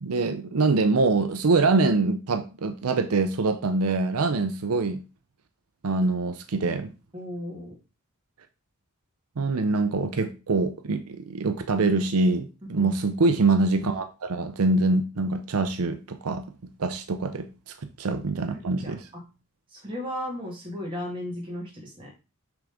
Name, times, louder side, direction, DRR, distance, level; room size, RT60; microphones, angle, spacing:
voice 1, 0.0-5.0 5.8-6.9 9.4-16.4 16.8-17.5 18.0-19.1, right 3 dB, 85° right, 0.6 m, -24 dB
voice 2, 7.1-7.7 12.8-12.9 18.5-19.2 19.7-22.1, left 1 dB, 20° right, 2.4 m, -35 dB
6.1 x 3.6 x 5.0 m
head